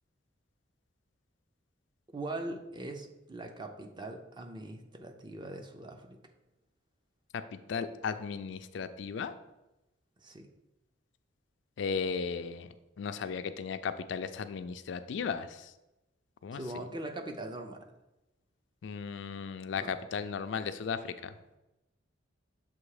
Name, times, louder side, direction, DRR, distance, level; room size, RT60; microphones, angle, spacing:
voice 1, 2.1-6.2 10.2-10.5 16.5-17.9 19.8-19.9, right 2 dB, 25° right, 4 dB, 0.6 m, -41 dB
voice 2, 7.3-9.3 11.8-12.7 13.0-15.5 16.4-16.6 18.8-21.3, left 6 dB, 65° left, 10 dB, 0.4 m, -35 dB
7.0 x 2.8 x 4.8 m, 0.96 s
head